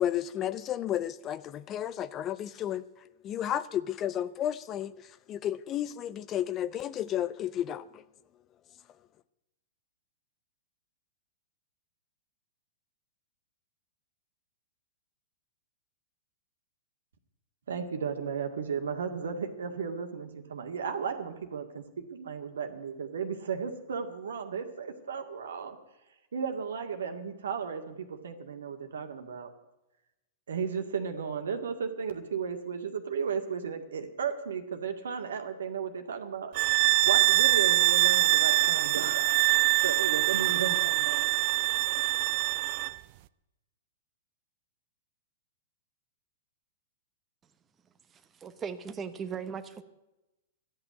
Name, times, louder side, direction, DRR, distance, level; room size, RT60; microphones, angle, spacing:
voice 1, 0.0-2.8 3.2-4.9 5.3-8.0, left 11 dB, 30° left, 0.6 m, -32 dB
voice 2, 17.7-25.8 26.3-29.5 30.5-36.5 37.0-39.5 39.8-41.3, right 6 dB, 70° right, 1.9 m, -35 dB
sound 1, 36.5-43.0, right 20 dB, 45° right, 0.5 m, -24 dB
voice 3, 48.1-49.8, right 6 dB, 20° right, 1.0 m, -38 dB
13.5 x 8.8 x 9.3 m
figure-of-eight pair, 110°, 0 cm